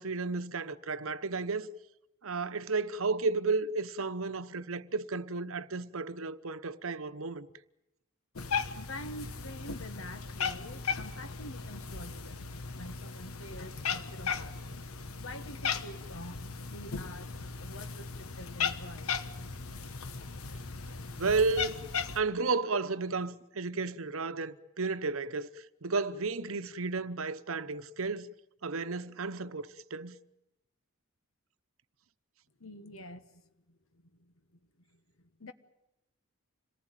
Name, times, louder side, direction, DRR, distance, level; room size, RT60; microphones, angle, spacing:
voice 1, 0.0-1.7 2.2-7.5 21.2-21.8 22.1-25.5 25.8-28.3 28.6-30.2, right 4 dB, 70° right, 0.9 m, -32 dB
Cat, 8.4-22.2, left 5 dB, 90° left, 1.2 m, -37 dB
voice 2, 8.5-12.4 12.7-14.8 15.2-17.3 17.6-19.2 32.6-33.4 33.7-33.8 34.2-34.3 34.9-35.5, left 1 dB, 70° left, 1.3 m, -47 dB
27.0 x 19.0 x 9.0 m
head